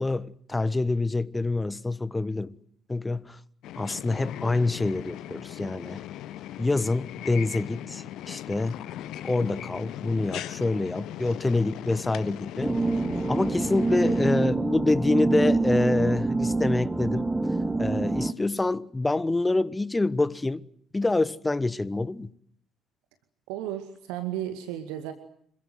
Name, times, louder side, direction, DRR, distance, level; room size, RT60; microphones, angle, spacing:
voice 1, 0.0-2.6 2.9-3.4 3.8-6.0 6.6-8.8 9.2-12.8 13.3-17.3 17.8-20.6 20.9-22.3, left 2 dB, 15° left, 1.3 m, -26 dB
sound 1, 3.6-14.5, left 12 dB, 60° left, 1.1 m, -39 dB
sound 2, 12.6-18.3, right 3 dB, 15° right, 1.6 m, -26 dB
voice 2, 23.5-25.1, right 12 dB, 65° right, 2.2 m, -34 dB
27.0 x 22.5 x 7.9 m
figure-of-eight pair, 45°, 0 cm